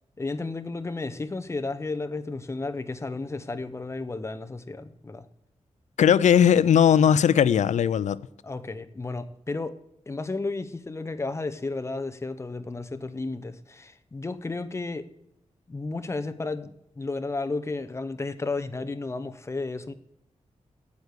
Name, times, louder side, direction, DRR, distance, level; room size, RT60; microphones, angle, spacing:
voice 1, 0.2-5.3 8.4-9.8 10.1-15.1 15.7-19.9, left 3 dB, 25° left, 0.7 m, -33 dB
voice 2, 6.0-8.2, left 8 dB, 90° left, 0.4 m, -18 dB
8.2 x 8.2 x 8.2 m
wide cardioid pair, 155°, 12 cm